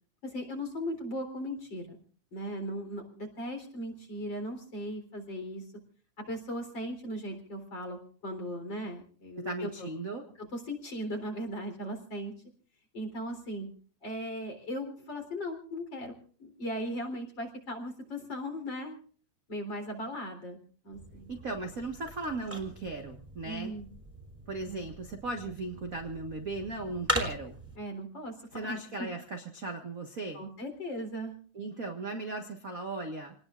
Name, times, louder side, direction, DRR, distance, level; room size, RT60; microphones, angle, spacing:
voice 1, 0.2-2.0 2.3-5.6 6.2-9.9 10.5-12.3 12.9-13.7 14.0-19.0 19.5-20.6 20.8-21.3 23.4-23.9 24.6-24.8 27.8-28.8 30.3-31.3, equal, 35° left, 4 dB, 4.4 m, -38 dB
voice 2, 9.4-10.3 21.3-23.7 24.5-27.6 28.5-30.4 31.5-33.3, right 2 dB, 35° right, 3 dB, 1.4 m, -37 dB
sound 1, 20.9-27.8, equal, 5° right, 3.3 m, -39 dB
28.5 x 19.5 x 2.5 m, 0.43 s
omnidirectional pair, 3.5 m